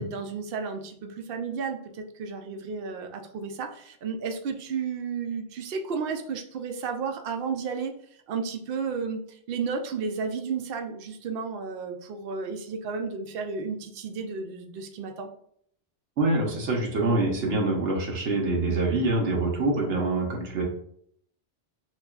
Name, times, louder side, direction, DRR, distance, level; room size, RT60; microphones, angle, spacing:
voice 1, 0.0-7.9 8.3-15.3, right 5 dB, 60° right, 5 dB, 0.8 m, -33 dB
voice 2, 16.2-20.6, right 2 dB, 85° right, -1 dB, 1.2 m, -25 dB
6.5 x 2.3 x 2.3 m, 0.66 s
omnidirectional pair, 1.2 m